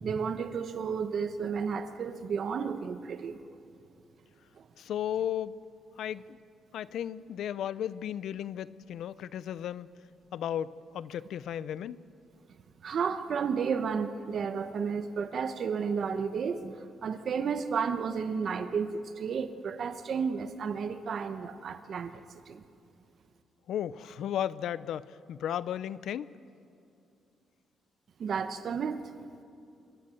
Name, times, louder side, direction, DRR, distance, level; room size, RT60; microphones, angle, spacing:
voice 1, 0.0-3.4 4.6-4.7 12.8-16.7 17.0-22.1 22.5-22.6 28.2-29.1, right 6 dB, 50° right, 9 dB, 1.0 m, -32 dB
voice 2, 4.8-5.6 6.0-6.4 6.7-9.9 10.3-12.0 23.7-26.3, left 10 dB, 75° left, 17 dB, 0.6 m, -34 dB
26.0 x 22.0 x 7.8 m, 2.7 s
cardioid pair, 130°, 0 cm